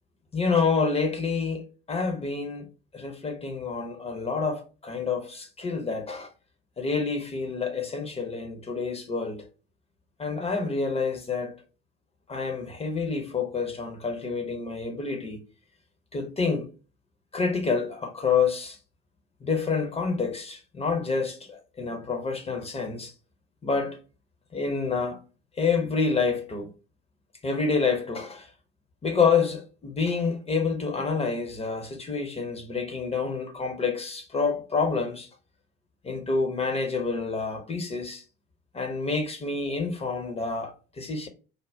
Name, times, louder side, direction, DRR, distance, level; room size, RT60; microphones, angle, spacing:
voice 1, 0.3-2.7 2.9-6.3 6.8-9.5 10.2-11.5 12.3-15.4 16.1-16.7 17.3-18.8 19.4-23.1 23.6-24.0 24.5-25.2 25.6-26.7 27.4-28.5 29.0-35.3 36.0-38.2 38.7-41.3, left 4 dB, 20° left, 0.6 m, -28 dB
3.3 x 2.0 x 2.5 m
figure-of-eight pair, 60°, 33 cm